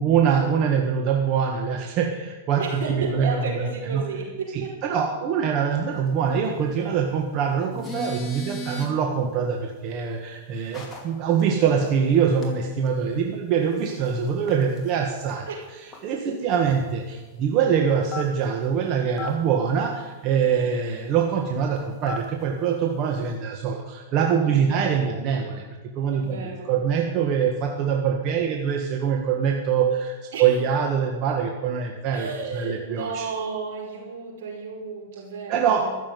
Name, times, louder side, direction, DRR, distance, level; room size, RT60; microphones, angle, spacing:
voice 1, 0.0-4.0 4.5-4.6 4.9-15.5 16.0-25.6 25.9-26.4 26.6-30.1 30.4-33.3 35.5-35.9, right 7 dB, 40° right, 2 dB, 1.4 m, -24 dB
voice 2, 2.6-5.0 15.5-15.7 20.3-20.6 24.4-25.4 26.1-26.7 30.3-30.5 32.1-35.9, right 4 dB, 75° right, 0 dB, 5.1 m, -33 dB
sound 1, 7.6-8.9 10.7-11.0 11.4-11.5 11.8-12.0 12.4-12.5 12.9-13.0 13.7-14.9 15.3-15.4 15.6-15.7 15.9-16.0 16.6-17.0 18.0-18.6 19.2-19.3 21.8-22.4, left 2 dB, 10° left, 2.6 m, -35 dB
13.5 x 7.4 x 9.3 m, 1.2 s
supercardioid pair, 140°, 0 cm